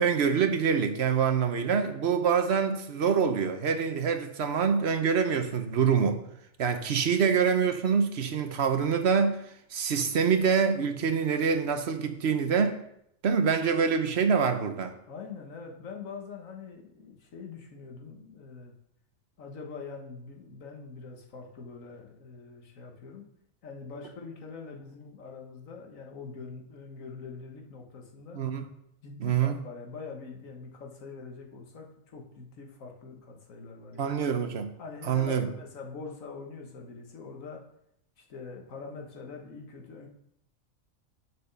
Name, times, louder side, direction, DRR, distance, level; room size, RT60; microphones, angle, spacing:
voice 1, 0.0-6.2 6.6-9.4 9.7-12.8 13.2-14.9 28.3-28.7 29.2-29.6 34.0-34.7 35.0-35.5, right 6 dB, 55° right, 7 dB, 1.0 m, -25 dB
voice 2, 15.1-18.7 19.4-23.3 23.6-28.4 29.0-34.2 34.8-37.6 38.2-40.1, left 4 dB, 70° left, 2 dB, 1.6 m, -44 dB
6.6 x 5.2 x 6.7 m, 0.74 s
omnidirectional pair, 1.5 m